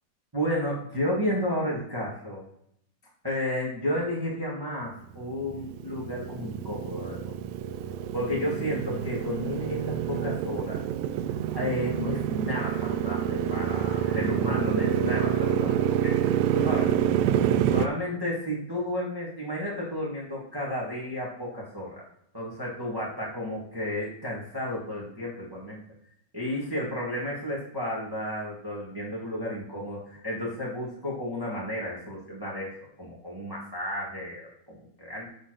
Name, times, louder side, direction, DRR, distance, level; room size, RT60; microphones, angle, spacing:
voice 1, 0.3-2.4 3.2-7.3 8.1-10.8 11.5-17.0 17.7-22.0 22.3-25.8 26.3-32.7 33.0-35.3, left 1 dB, 15° right, -5 dB, 0.7 m, -32 dB
Motorcycle, 5.2-17.9, right 10 dB, 85° right, 1.9 m, -27 dB
7.8 x 3.9 x 6.5 m, 0.73 s
omnidirectional pair, 4.5 m